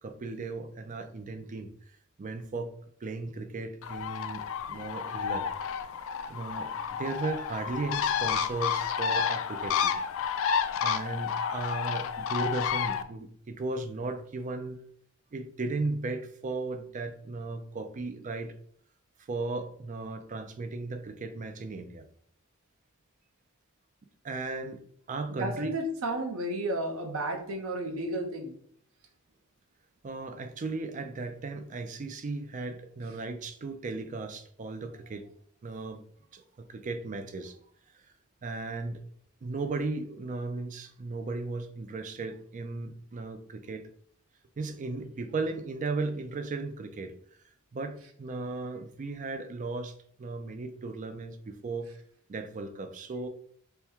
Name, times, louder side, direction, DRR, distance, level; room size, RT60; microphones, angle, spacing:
voice 1, 0.0-1.7 2.2-2.7 3.0-5.5 6.3-10.0 10.8-14.8 15.3-18.5 19.2-22.1 24.2-24.8 25.1-25.8 30.0-35.3 35.6-36.0 36.3-37.6 38.4-39.0 39.4-43.8 44.6-47.1 47.7-51.9 52.3-53.3, right 3 dB, 35° right, 8 dB, 0.4 m, -36 dB
Bird, 3.8-13.0, left 7 dB, 65° left, 0.3 m, -30 dB
voice 2, 25.3-28.6, right 1 dB, 70° right, 3 dB, 0.7 m, -32 dB
3.5 x 2.2 x 4.3 m, 0.62 s
head